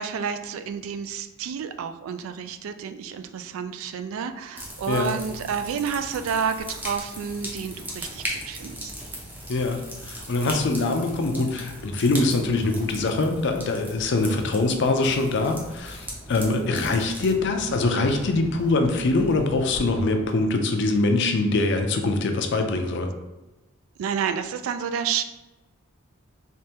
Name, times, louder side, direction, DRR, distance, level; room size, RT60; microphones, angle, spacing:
voice 1, 0.0-8.9 24.0-25.2, right 7 dB, 70° right, 9 dB, 0.3 m, -30 dB
sound 1, 4.6-20.8, equal, 10° right, 0.6 m, -39 dB
voice 2, 9.5-23.1, left 2 dB, 55° left, 5 dB, 0.4 m, -23 dB
3.4 x 3.2 x 2.8 m, 1.1 s
head